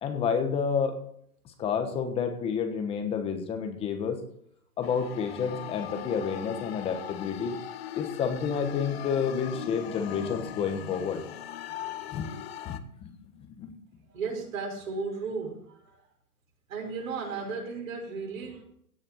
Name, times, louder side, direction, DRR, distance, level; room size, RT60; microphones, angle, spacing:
voice 1, 0.0-1.0 1.6-4.2 4.8-7.6 8.0-11.2 12.1-12.3 12.6-13.1 13.6-13.8, left 6 dB, 10° left, 7 dB, 1.1 m, -29 dB
sound 1, 4.8-12.8, left 11 dB, 40° left, 1.0 m, -40 dB
voice 2, 14.1-16.0 16.7-18.6, right 4 dB, 60° right, 0 dB, 6.2 m, -35 dB
16.5 x 6.5 x 6.4 m, 0.67 s
hypercardioid pair, 150°, 45 cm